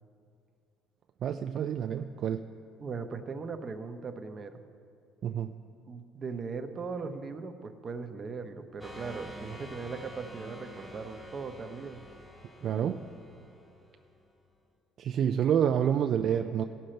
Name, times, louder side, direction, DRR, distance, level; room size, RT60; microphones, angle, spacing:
voice 1, 1.2-2.4 5.2-5.5 12.6-13.0 15.0-16.6, right 9 dB, 55° right, 7 dB, 0.3 m, -28 dB
voice 2, 2.8-4.6 5.9-12.0 12.6-13.0, right 4 dB, 35° right, 7 dB, 0.8 m, -39 dB
sound 1, 8.8-14.2, equal, 5° left, 1.8 m, -48 dB
16.0 x 6.5 x 4.4 m, 2.4 s
cardioid pair, 95°, 0 cm